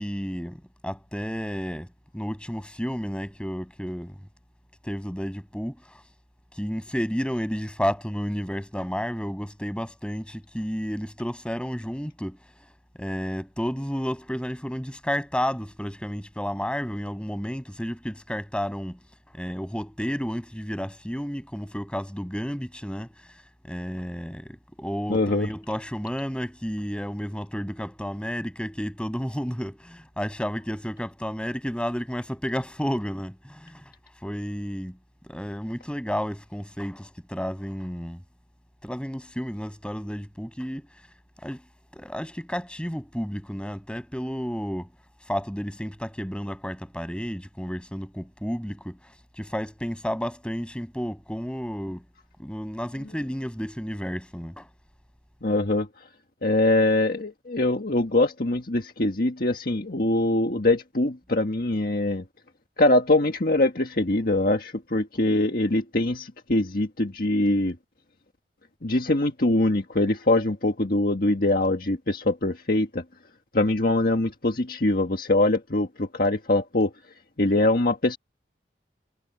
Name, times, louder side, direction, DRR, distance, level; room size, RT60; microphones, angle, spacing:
voice 1, 0.0-4.2 4.8-6.0 6.5-12.4 13.0-19.0 19.3-23.1 23.6-33.8 34.2-35.0 35.2-38.2 38.8-40.9 41.4-41.6 41.9-44.9 45.3-52.0 52.4-54.7, equal, 5° left, 7.5 m, -31 dB
voice 2, 25.1-25.5 55.4-55.9 56.4-62.2 62.8-67.7 68.8-73.0 73.5-76.9 77.4-78.2, left 2 dB, 55° left, 1.6 m, -23 dB
head